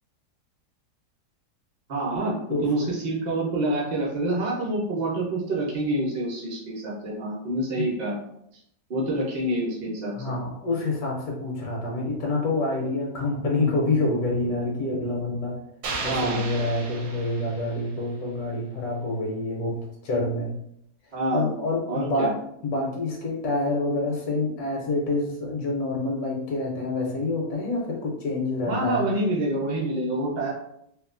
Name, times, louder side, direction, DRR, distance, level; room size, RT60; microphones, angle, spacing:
voice 1, 1.9-8.2 8.9-10.1 16.1-16.4 21.1-21.5 21.9-22.3 28.6-30.5, right 1 dB, 45° right, -4 dB, 0.5 m, -27 dB
voice 2, 2.5-2.9 7.8-7.9 10.2-15.6 16.0-19.8 20.0-20.5 21.3-22.3 22.6-29.1, left 2 dB, 75° left, -1 dB, 1.1 m, -27 dB
sound 1, 15.8-18.0, right 3 dB, 75° right, 1.1 m, -34 dB
2.8 x 2.3 x 2.4 m, 0.74 s
omnidirectional pair, 1.7 m